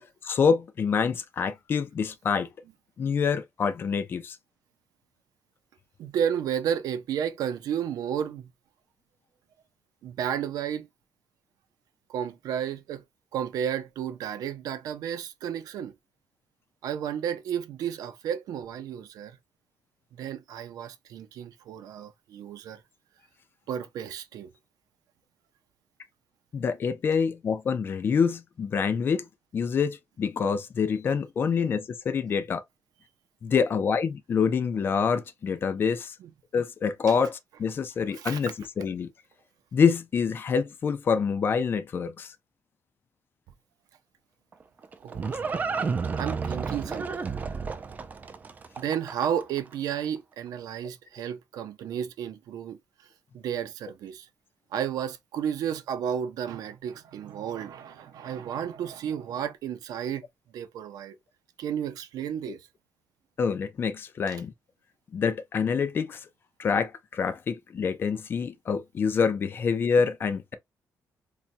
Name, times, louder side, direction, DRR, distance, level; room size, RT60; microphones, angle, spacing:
voice 1, 0.2-2.5 3.0-4.4 26.5-29.3 29.5-32.6 33.4-36.2 36.5-39.1 39.7-42.3 63.4-64.5 65.1-66.3 66.6-70.5, left 6 dB, 35° left, 0.4 m, -26 dB
voice 2, 6.0-8.5 10.0-10.9 12.1-13.0 13.3-15.9 16.8-19.4 20.1-22.8 23.7-24.5 36.2-36.3 38.1-38.4 45.0-45.4 46.2-47.3 48.8-52.8 53.3-54.3 54.7-60.2 60.5-61.2 61.6-62.6, right 9 dB, 80° right, 0.5 m, -32 dB
Livestock farm animals working animals, 44.5-49.6, right 5 dB, 25° right, 0.4 m, -31 dB
4.1 x 2.2 x 2.5 m
cardioid pair, 170°, 6 cm